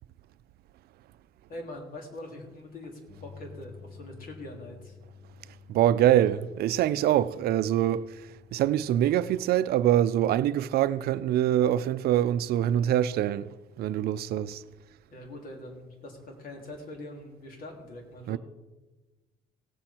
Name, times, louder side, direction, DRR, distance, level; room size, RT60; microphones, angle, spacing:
voice 1, 1.5-5.0 15.1-18.4, left 1 dB, 55° left, 3.2 m, -43 dB
Bass guitar, 3.1-9.3, left 6 dB, 35° left, 3.4 m, -51 dB
voice 2, 5.7-8.2 8.5-13.5 13.8-14.6 18.3-18.4, right 11 dB, 70° right, 0.5 m, -24 dB
17.5 x 7.8 x 4.3 m
cardioid pair, 110°, 17 cm